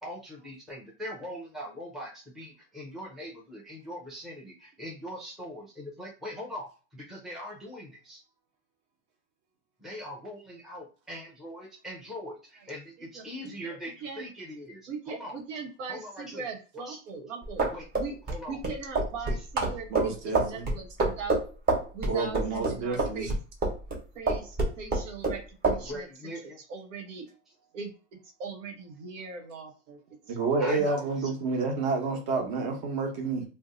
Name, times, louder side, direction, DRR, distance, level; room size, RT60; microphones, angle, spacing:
voice 1, 0.0-8.2 9.8-15.3 15.9-16.4 16.8-17.0 17.7-17.9 18.3-18.6 25.8-26.6 30.6-31.3, equal, ahead, 0.5 m, -41 dB
voice 2, 13.0-14.3 14.9-17.7 17.9-18.2 18.5-21.4 21.9-23.3 24.1-26.1 26.4-27.3 27.7-27.9 28.4-30.0 30.3-30.8, right 4 dB, 85° right, 1.0 m, -40 dB
sound 1, 17.4-24.0 24.3-25.4 25.6-25.8, right 2 dB, 25° right, 0.9 m, -27 dB
voice 3, 19.9-20.6 22.1-23.3 30.3-33.4, right 3 dB, 45° right, 1.0 m, -29 dB
2.6 x 2.2 x 3.7 m
supercardioid pair, 140°, 37 cm